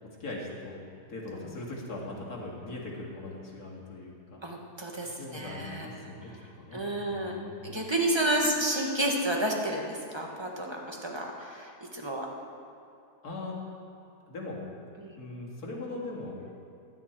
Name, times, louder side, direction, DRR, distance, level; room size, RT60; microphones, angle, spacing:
voice 1, 0.0-4.4 5.2-7.6 13.2-13.6 14.3-14.6 15.1-16.4, left 2 dB, 75° left, -3 dB, 2.7 m, -40 dB
voice 2, 4.4-6.1 6.7-12.3 15.0-15.2, right 1 dB, 20° right, 0 dB, 1.4 m, -31 dB
16.0 x 10.5 x 4.5 m, 2.7 s
omnidirectional pair, 1.6 m